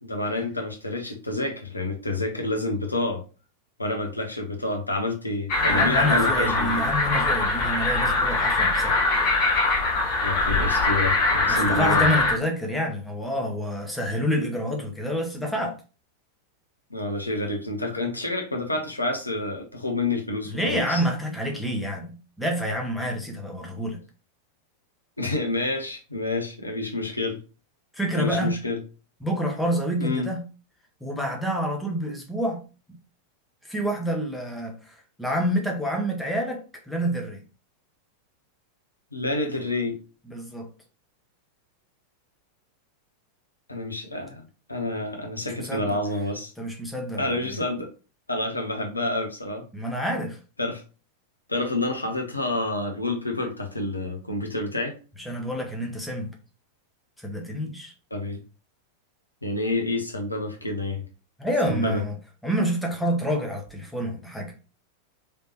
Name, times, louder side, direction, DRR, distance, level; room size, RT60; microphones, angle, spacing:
voice 1, 0.0-3.2 3.8-6.9 10.2-12.1 16.9-21.0 25.2-27.4 28.1-28.8 30.0-30.3 39.1-40.0 43.7-44.4 44.7-46.5 47.2-47.9 48.3-49.6 50.6-50.8 51.5-55.0 58.1-58.4 59.4-61.0 61.7-62.0, left 2 dB, 85° left, 0.8 m, -28 dB
sound 1, 5.5-12.3, left 2 dB, 45° left, 1.3 m, -22 dB
voice 2, 5.6-9.0 11.5-15.8 20.4-24.0 27.9-28.6 29.2-30.5 31.0-32.6 33.6-37.4 40.3-40.7 45.6-45.9 46.6-47.5 49.7-50.4 55.2-56.3 57.2-57.9 61.4-62.1 62.4-64.5, equal, ahead, 0.9 m, -28 dB
3.3 x 3.1 x 2.9 m
figure-of-eight pair, 90°, 0 cm